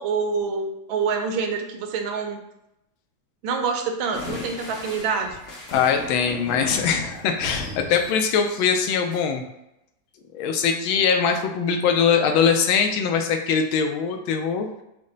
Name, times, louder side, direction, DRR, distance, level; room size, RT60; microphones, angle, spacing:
voice 1, 0.0-2.4 3.4-5.4, right 5 dB, 80° right, 4 dB, 1.4 m, -26 dB
sound 1, 4.1-9.2, left 3 dB, 55° left, 0.9 m, -36 dB
voice 2, 5.7-9.4 10.3-14.7, left 6 dB, 90° left, 5 dB, 1.4 m, -22 dB
5.2 x 2.1 x 3.8 m, 0.86 s
omnidirectional pair, 2.1 m